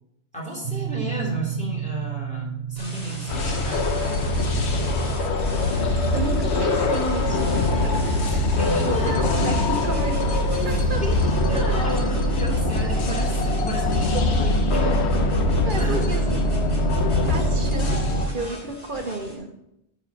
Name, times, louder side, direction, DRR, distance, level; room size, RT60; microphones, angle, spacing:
voice 1, 0.3-3.9 8.5-9.3 10.6-15.0 15.7-16.3, right 1 dB, 5° left, -4 dB, 3.3 m, -33 dB
sound 1, 0.6-10.8, right 10 dB, 70° right, 1.0 m, -35 dB
sound 2, 2.8-19.3, left 1 dB, 85° left, 3.9 m, -38 dB
sound 3, 3.3-18.3, left 1 dB, 70° left, 1.3 m, -22 dB
voice 2, 6.1-7.5 7.8-8.2 8.8-10.3 10.6-11.0 11.5-11.6 15.6-16.5 17.3-19.5, right 2 dB, 45° right, 4 dB, 1.5 m, -32 dB
9.5 x 6.5 x 5.8 m, 0.82 s
omnidirectional pair, 1.2 m